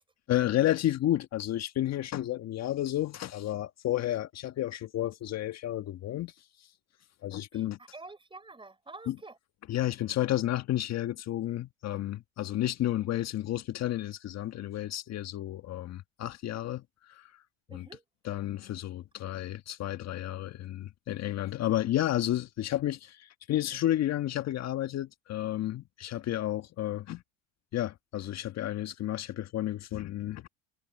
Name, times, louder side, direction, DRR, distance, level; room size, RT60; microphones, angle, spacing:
voice 1, 0.3-6.3 6.6-6.7 7.2-7.8 9.1-9.2 9.7-17.3 17.7-17.8 18.2-27.2 27.7-30.5, left 13 dB, 45° left, 1.6 m, -31 dB
voice 2, 7.5-9.4 17.7-18.0, right 3 dB, 15° right, 6.1 m, -48 dB
hypercardioid pair, 85°, 37 cm